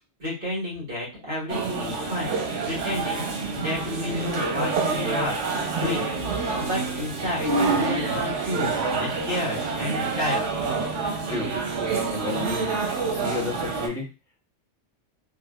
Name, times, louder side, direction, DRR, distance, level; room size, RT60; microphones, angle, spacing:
voice 1, 0.2-3.3 3.5-5.4 5.7-6.1 6.6-10.5, left 1 dB, 50° right, -4 dB, 1.6 m, -31 dB
sound 1, 1.5-13.9, right 4 dB, 90° right, 1.1 m, -27 dB
voice 2, 12.1-12.8 13.1-14.1, left 3 dB, 5° left, -4 dB, 0.8 m, -32 dB
3.6 x 2.5 x 2.3 m, 0.31 s
omnidirectional pair, 1.2 m